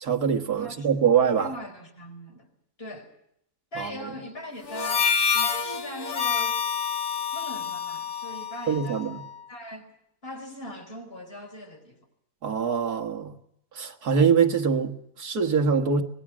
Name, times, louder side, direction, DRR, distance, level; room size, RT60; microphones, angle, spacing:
voice 1, 0.0-1.5 3.8-4.1 8.7-9.2 12.4-13.3 13.8-16.0, right 6 dB, 75° right, 2.1 m, -24 dB
voice 2, 0.6-2.5 2.8-3.1 3.7-6.6 7.3-9.9 10.2-12.0, equal, 35° left, 5.0 m, -41 dB
Harmonica, 4.7-9.3, left 7 dB, 70° left, 3.1 m, -28 dB
25.5 x 20.0 x 6.2 m
omnidirectional pair, 1.7 m